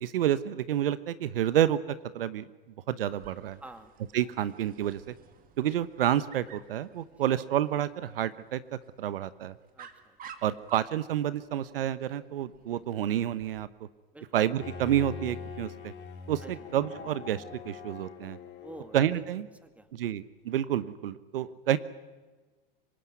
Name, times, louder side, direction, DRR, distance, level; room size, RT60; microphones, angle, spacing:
voice 1, 0.0-2.4 2.9-3.6 4.1-5.1 5.6-8.6 9.0-9.5 10.4-13.7 14.3-15.9 16.3-18.4 18.9-19.4 19.9-21.8, right 11 dB, 70° right, 16 dB, 1.0 m, -29 dB
Dog, 3.1-13.7, right 7 dB, 30° right, 2.3 m, -54 dB
voice 2, 3.6-3.9 7.1-7.3 9.7-10.2 14.1-14.4 16.4-16.7 18.6-19.2 19.6-19.9, right 1 dB, 5° right, 9 dB, 2.2 m, -48 dB
Bowed string instrument, 14.6-19.4, left 5 dB, 35° left, 4.1 m, -43 dB
25.5 x 18.5 x 9.4 m, 1.3 s
hypercardioid pair, 105°, 29 cm